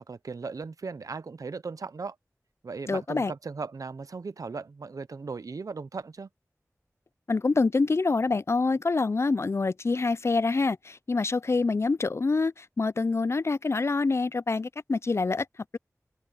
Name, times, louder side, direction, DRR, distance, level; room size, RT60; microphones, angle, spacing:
voice 1, 0.0-2.2 2.6-6.3, right 4 dB, 90° right, 0.5 m, -37 dB
voice 2, 2.9-3.3 7.3-15.5, left 3 dB, 50° left, 0.3 m, -26 dB
wide cardioid pair, 65°, 6 cm